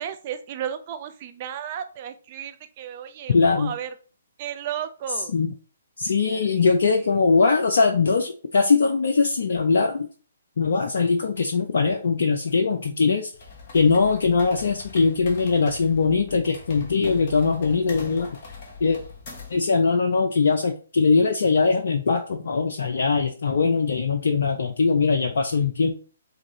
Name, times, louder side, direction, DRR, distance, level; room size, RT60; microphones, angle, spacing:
voice 1, 0.0-3.9 4.4-5.3 6.2-7.1, right 9 dB, 35° right, 8 dB, 0.4 m, -34 dB
voice 2, 3.3-3.7 5.3-5.5 6.0-10.1 10.6-13.3 13.7-18.4 18.8-19.0 19.5-26.0, left 4 dB, 55° left, 4 dB, 0.4 m, -21 dB
sound 1, 13.3-19.7, left 4 dB, 35° left, 1.0 m, -42 dB
3.7 x 2.6 x 2.9 m, 0.38 s
figure-of-eight pair, 130°, 0 cm